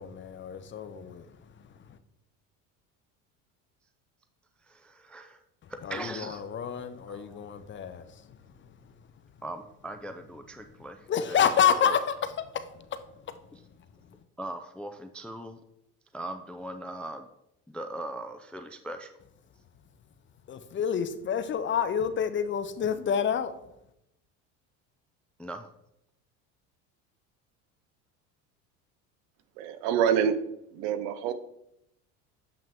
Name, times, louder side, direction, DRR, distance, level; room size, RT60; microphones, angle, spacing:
voice 1, 0.0-2.0 5.6-8.9 11.1-12.9 13.3-13.4 20.5-23.5, left 8 dB, 30° left, 0.6 m, -29 dB
voice 2, 4.6-5.4 5.7-6.4 7.1-7.4 9.4-11.4 11.8-12.0 13.5-13.6 14.4-15.6 16.1-17.3 17.7-19.1 25.4-25.7, right 1 dB, 5° left, 0.3 m, -40 dB
voice 3, 29.6-30.4 30.7-31.3, right 8 dB, 75° right, 0.8 m, -26 dB
7.4 x 5.6 x 3.6 m
supercardioid pair, 100°, 37 cm